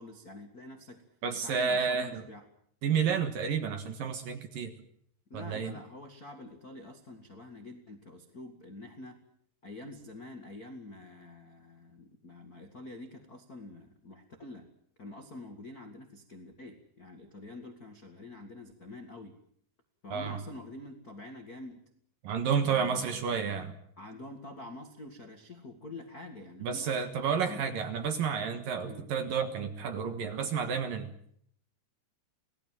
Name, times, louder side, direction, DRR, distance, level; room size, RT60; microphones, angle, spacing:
voice 1, 0.0-1.0 1.3-2.5 5.3-9.2 9.6-14.7 15.0-19.4 20.0-21.8 22.6-23.3 24.0-26.9 27.4-27.8 28.9-29.0, left 2 dB, 45° left, 3 dB, 1.2 m, -46 dB
voice 2, 1.2-2.2 2.8-4.8 5.3-5.8 20.1-20.4 22.2-23.7 26.6-31.1, right 6 dB, 60° right, 8 dB, 2.7 m, -31 dB
27.5 x 18.5 x 7.7 m, 0.66 s
omnidirectional pair, 5.3 m